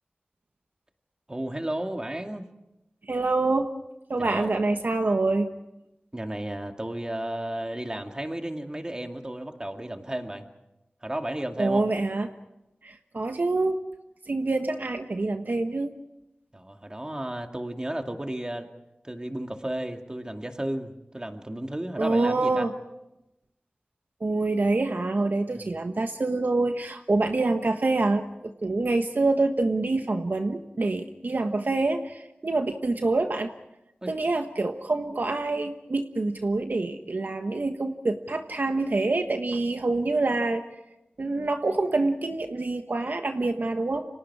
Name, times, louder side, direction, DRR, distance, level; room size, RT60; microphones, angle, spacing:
voice 1, 1.3-2.5 4.2-4.5 6.1-10.5 11.0-11.8 16.5-18.7 19.0-22.7 25.5-25.7 34.0-34.1, right 1 dB, 20° right, 4 dB, 2.4 m, -33 dB
voice 2, 3.0-3.7 4.1-5.5 11.6-12.3 12.8-13.8 14.3-15.9 22.0-22.7 24.2-33.5 34.1-40.6 41.2-44.1, right 2 dB, 60° right, 6 dB, 1.3 m, -26 dB
30.0 x 25.5 x 4.9 m, 0.90 s
wide cardioid pair, 75°, 4 cm